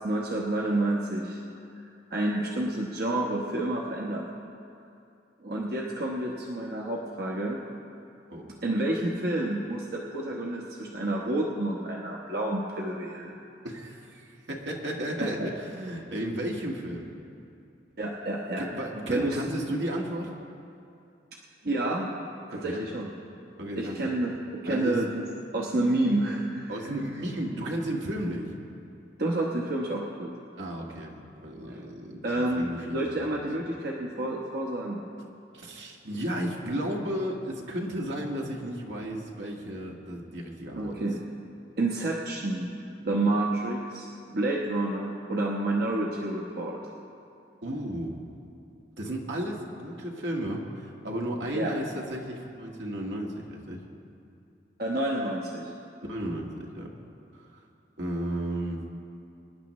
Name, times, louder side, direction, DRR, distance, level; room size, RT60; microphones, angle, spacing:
voice 1, 0.0-1.4 2.1-4.2 5.4-7.6 8.6-13.4 15.2-15.5 18.0-18.6 19.1-19.4 21.6-22.1 22.5-23.1 23.8-24.3 24.6-25.2 25.5-26.7 29.2-30.3 31.7-31.8 32.2-35.0 40.8-41.2 41.8-42.7 43.0-44.1 44.3-46.8 51.5-51.8 54.8-55.7, right 1 dB, 60° right, -2 dB, 1.0 m, -29 dB
voice 2, 13.6-17.1 18.5-20.3 22.5-22.8 23.6-24.1 24.7-25.0 26.7-28.5 30.6-33.5 35.5-41.1 47.6-48.2 49.0-53.9 56.0-56.9 57.4-57.6 58.0-58.8, right 1 dB, 80° right, -1 dB, 1.7 m, -34 dB
25.0 x 10.5 x 3.2 m, 2.6 s
head